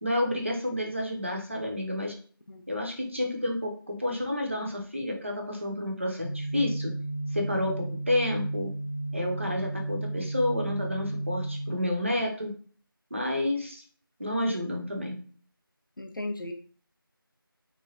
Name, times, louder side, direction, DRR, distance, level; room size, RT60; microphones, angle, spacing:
voice 1, 0.0-2.2 2.7-6.9 7.3-8.7 9.1-12.5 13.1-13.8 14.2-15.2, left 1 dB, 30° right, 1 dB, 0.5 m, -30 dB
sound 1, 6.2-11.7, right 2 dB, 35° left, 0.9 m, -33 dB
voice 2, 16.0-16.5, left 2 dB, 60° left, 5 dB, 0.5 m, -35 dB
3.0 x 2.2 x 2.5 m, 0.43 s
figure-of-eight pair, 170°, 12 cm